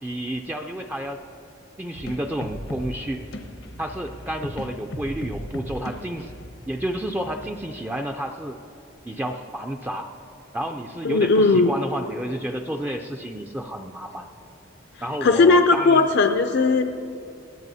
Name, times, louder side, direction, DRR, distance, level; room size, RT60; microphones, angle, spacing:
voice 1, 0.0-1.2 1.8-3.3 3.8-6.3 6.7-8.6 9.0-10.1 10.5-14.3 15.0-16.1, right 1 dB, 10° right, 3 dB, 0.4 m, -30 dB
sound 1, 1.9-7.6, equal, 90° left, 1.1 m, -37 dB
voice 2, 11.0-11.7 15.2-16.8, left 3 dB, 60° left, 6 dB, 0.5 m, -17 dB
21.5 x 16.5 x 2.7 m, 2.7 s
head